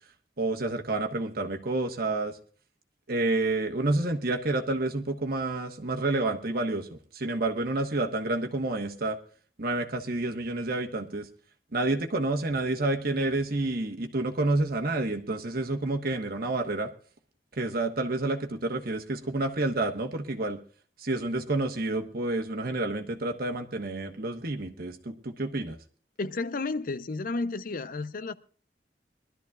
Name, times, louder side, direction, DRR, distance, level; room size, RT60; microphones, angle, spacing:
voice 1, 0.4-2.4 3.1-9.2 9.6-11.3 11.7-16.9 17.6-20.6 21.0-25.8, right 2 dB, 60° right, 1.3 m, -29 dB
voice 2, 26.2-28.3, left 3 dB, 55° left, 0.6 m, -32 dB
23.0 x 12.5 x 2.4 m
head